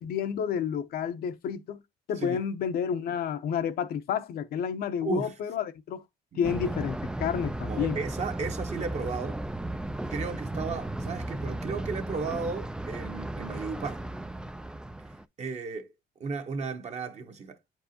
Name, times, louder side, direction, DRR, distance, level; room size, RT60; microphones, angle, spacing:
voice 1, 0.0-1.8 2.1-6.0 6.4-8.0, left 8 dB, 65° left, 0.7 m, -30 dB
voice 2, 5.0-5.3 6.3-6.5 7.7-9.4 10.1-14.1 15.4-15.9 16.2-17.6, right 4 dB, 40° right, 1.1 m, -34 dB
Thunder, 6.4-15.2, right 1 dB, 5° right, 0.3 m, -35 dB
8.5 x 4.6 x 2.8 m
cardioid pair, 110°, 17 cm